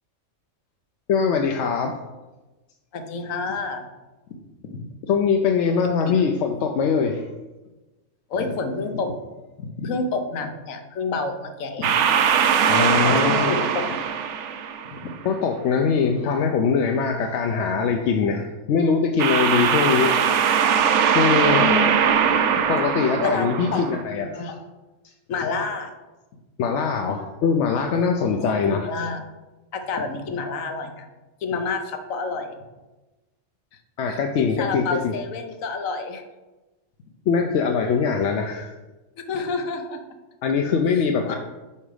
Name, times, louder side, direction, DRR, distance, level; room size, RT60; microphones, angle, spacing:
voice 1, 1.1-2.0 5.1-7.3 12.7-13.5 15.2-20.1 21.1-21.7 22.7-24.6 26.6-28.9 34.0-35.1 37.3-38.7 40.4-41.4, left 5 dB, 70° left, 3 dB, 0.8 m, -22 dB
voice 2, 2.9-3.9 4.7-4.8 6.1-6.2 8.3-9.1 9.6-12.0 13.0-13.7 14.9-15.1 21.6-21.9 22.2-22.7 23.2-23.5 23.7-24.5 25.3-25.9 27.9-28.3 28.6-29.2 29.7-31.0 31.4-32.6 34.1-36.2 39.3-40.0 40.9-41.4, left 4 dB, 85° left, 6 dB, 1.2 m, -29 dB
sound 1, 11.8-15.1 19.2-24.0, right 7 dB, 70° right, 0.8 m, -21 dB
5.5 x 5.0 x 4.8 m, 1.1 s
omnidirectional pair, 1.3 m